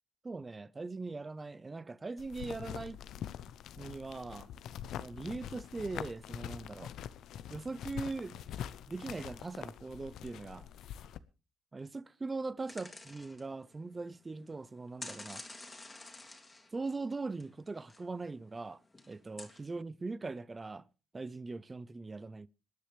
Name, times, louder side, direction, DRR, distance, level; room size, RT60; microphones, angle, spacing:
voice 1, 0.2-3.0 3.8-4.5 5.0-6.9 7.5-8.4 8.9-10.7 11.7-15.4 16.7-18.8 19.1-20.8 21.1-22.5, right 3 dB, 25° right, 0.6 m, -41 dB
sound 1, 2.2-11.2, left 10 dB, 80° left, 0.7 m, -44 dB
sound 2, 12.7-13.8 14.1-14.5 15.0-18.0 18.4-18.5 18.9-19.7, left 2 dB, 20° left, 2.8 m, -49 dB
26.0 x 10.0 x 3.3 m
cardioid pair, 90°, 0 cm